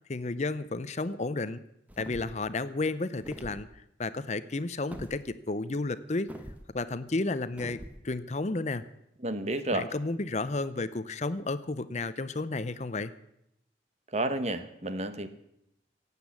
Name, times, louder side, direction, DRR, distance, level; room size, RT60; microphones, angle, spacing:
voice 1, 0.1-1.6 2.0-3.7 4.0-6.3 6.7-7.8 8.0-8.8 9.7-13.1, left 3 dB, 40° left, 14 dB, 0.6 m, -32 dB
sound 1, 1.9-2.4 3.2-3.6 4.9-5.2 6.3-6.6 7.6-8.0, equal, 10° right, 1.3 m, -43 dB
voice 2, 9.2-9.9 14.1-15.3, right 1 dB, 35° right, 10 dB, 1.1 m, -31 dB
17.5 x 8.4 x 8.5 m, 0.79 s
head